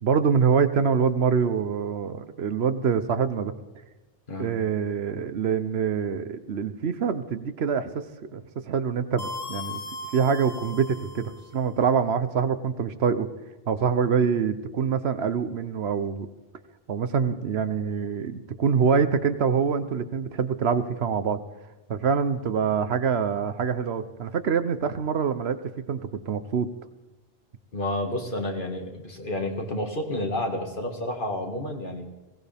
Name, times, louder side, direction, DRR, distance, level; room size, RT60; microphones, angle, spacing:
voice 1, 0.0-3.5 4.4-8.0 8.3-9.8 10.1-13.3 13.7-16.3 16.9-21.4 21.9-25.6 25.9-26.0 26.3-26.7, right 6 dB, 80° right, 11 dB, 1.1 m, -25 dB
sound 1, 9.2-11.6, left 3 dB, 90° left, 1.4 m, -38 dB
voice 2, 27.7-32.0, left 1 dB, 55° left, 3 dB, 2.0 m, -30 dB
20.5 x 17.0 x 3.5 m, 1.1 s
omnidirectional pair, 1.0 m